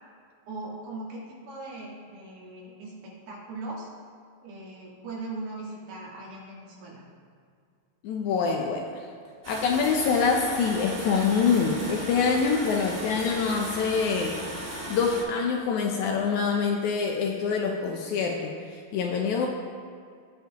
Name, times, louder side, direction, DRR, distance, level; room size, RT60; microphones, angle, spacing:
voice 1, 0.5-3.9 4.4-7.0, right 2 dB, 75° right, -4 dB, 3.6 m, -39 dB
voice 2, 8.0-8.8 9.5-14.3 14.9-19.5, left 5 dB, 85° left, 1 dB, 1.7 m, -25 dB
sound 1, 9.4-15.2, equal, 25° right, 2.0 m, -37 dB
17.0 x 5.7 x 2.9 m, 2.2 s
omnidirectional pair, 4.3 m